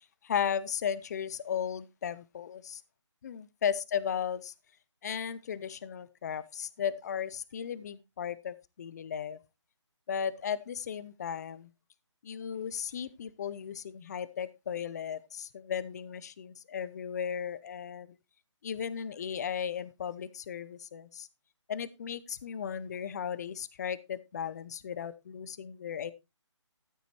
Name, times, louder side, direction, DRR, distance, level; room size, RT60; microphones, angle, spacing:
voice 1, 0.2-2.8 3.2-4.5 5.0-9.4 10.1-11.7 12.2-18.1 18.6-21.3 21.7-26.1, left 8 dB, 35° left, 0.6 m, -35 dB
13.5 x 8.0 x 3.1 m
hypercardioid pair, 160°, 16 cm